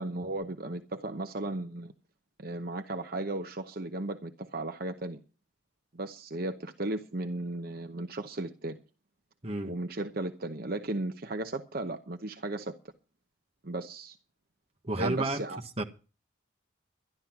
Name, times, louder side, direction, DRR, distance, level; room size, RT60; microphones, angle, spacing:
voice 1, 0.0-1.9 2.4-5.2 5.9-8.8 9.6-12.7 13.6-14.2 15.0-15.6, right 2 dB, 50° right, 0.9 m, -35 dB
voice 2, 14.8-15.4 15.8-15.9, right 2 dB, 30° right, 1.5 m, -30 dB
12.0 x 11.5 x 6.0 m
head